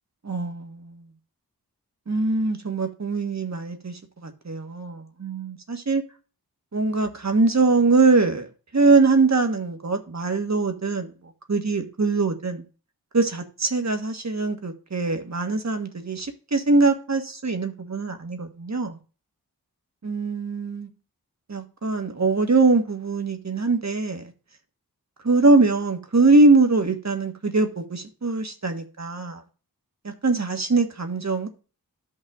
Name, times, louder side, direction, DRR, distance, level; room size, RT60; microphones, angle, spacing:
voice 1, 0.2-1.0 2.1-6.0 6.7-8.5 8.7-11.1 11.5-12.6 13.1-19.0 20.0-20.9 21.5-24.3 25.2-29.4 30.0-31.5, right 3 dB, 45° right, 1.5 m, -22 dB
12.5 x 5.5 x 3.6 m
wide cardioid pair, 50°, 37 cm